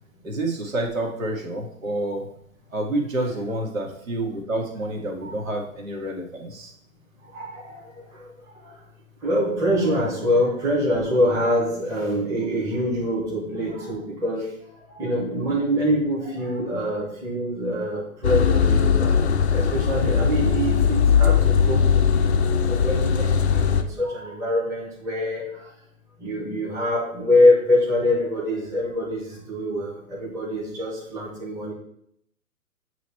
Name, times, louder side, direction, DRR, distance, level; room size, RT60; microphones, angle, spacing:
voice 1, 0.2-2.3 2.7-6.7, right 1 dB, 65° right, 0 dB, 1.8 m, -28 dB
voice 2, 7.3-7.8 9.2-14.5 14.9-19.2 19.5-25.5 26.2-31.7, left 1 dB, 5° right, -5 dB, 1.2 m, -24 dB
sound 1, 18.2-23.8, left 7 dB, 50° left, 0.6 m, -19 dB
8.0 x 3.1 x 4.4 m, 0.70 s
figure-of-eight pair, 130°, 43 cm